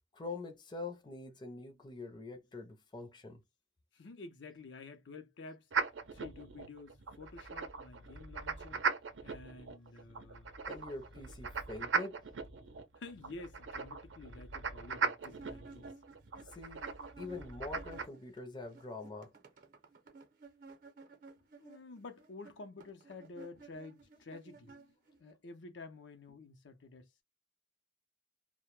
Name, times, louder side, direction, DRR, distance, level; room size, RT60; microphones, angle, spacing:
voice 1, 0.1-3.4 10.7-12.2 16.5-16.9 17.2-19.3, left 3 dB, 25° left, 0.5 m, -44 dB
voice 2, 3.9-5.7 6.1-8.8 9.2-10.5 12.9-15.9 21.6-24.9 25.2-27.2, left 3 dB, 75° left, 0.6 m, -50 dB
sound 1, 5.7-18.1, right 5 dB, 85° right, 0.6 m, -39 dB
sound 2, 15.2-18.4 18.6-25.3, right 4 dB, 50° right, 0.7 m, -55 dB
2.1 x 2.1 x 3.0 m
head